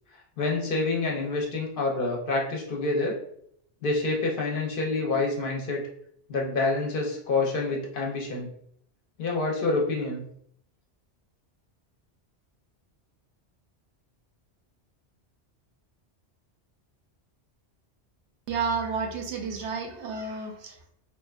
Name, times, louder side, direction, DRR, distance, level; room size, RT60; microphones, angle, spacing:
voice 1, 0.4-3.2 3.8-5.8 6.3-8.5 9.2-10.2, left 3 dB, 60° left, -1 dB, 0.7 m, -27 dB
voice 2, 18.5-20.9, right 5 dB, 85° right, 3 dB, 0.9 m, -31 dB
2.8 x 2.1 x 2.3 m, 0.68 s
omnidirectional pair, 1.1 m